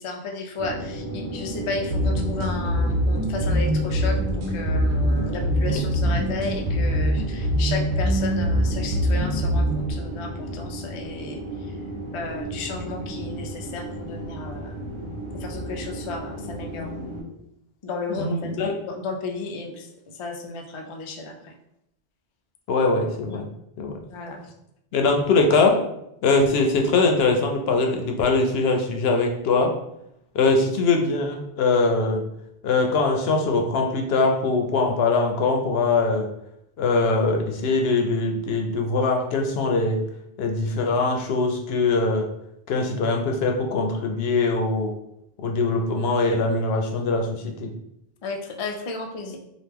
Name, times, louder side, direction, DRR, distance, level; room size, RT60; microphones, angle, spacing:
voice 1, 0.0-11.8 12.1-14.8 15.3-16.9 17.8-21.5 23.3-23.4 24.1-24.5 48.2-49.4, left 3 dB, 50° left, 3 dB, 0.3 m, -33 dB
sound 1, 0.6-17.2, right 1 dB, 30° right, 1.0 m, -34 dB
sound 2, 1.9-9.9, equal, 85° right, 0.9 m, -23 dB
voice 2, 18.1-18.7 22.7-23.5 23.8-24.0 24.9-25.8 26.2-29.7 30.3-32.2 32.6-36.3 36.8-40.0 40.4-42.3 42.7-44.9 45.4-47.7, left 3 dB, 75° left, 3 dB, 0.8 m, -22 dB
2.9 x 2.3 x 3.5 m, 0.81 s
omnidirectional pair, 1.0 m